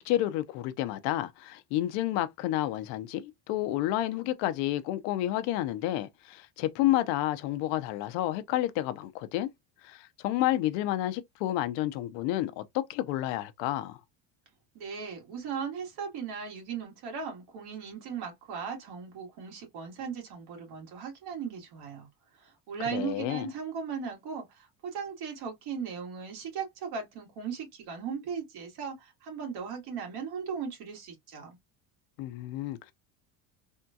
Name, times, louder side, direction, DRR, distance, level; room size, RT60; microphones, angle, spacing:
voice 1, 0.0-9.5 9.8-14.0 22.8-23.5 32.2-32.9, left 14 dB, 85° left, 0.6 m, -30 dB
voice 2, 14.8-22.1 22.4-31.6, right 6 dB, 60° right, 1.8 m, -37 dB
3.6 x 2.2 x 2.7 m
cardioid pair, 150°, 43 cm